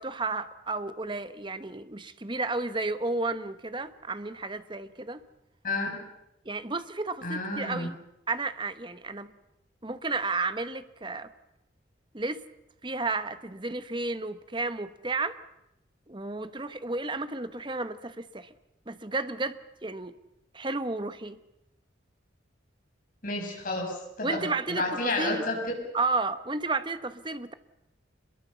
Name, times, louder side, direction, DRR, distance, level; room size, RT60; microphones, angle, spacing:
voice 1, 0.0-5.2 6.4-8.0 8.3-9.3 9.8-11.3 12.1-12.4 12.8-15.4 16.1-18.5 18.9-20.1 20.5-21.4 24.2-25.4 25.9-27.5, right 3 dB, 25° right, 11 dB, 1.1 m, -32 dB
voice 2, 5.6-6.0 7.2-7.9 23.2-25.6, left 2 dB, 45° left, 0 dB, 7.3 m, -31 dB
26.5 x 22.0 x 7.1 m, 0.88 s
head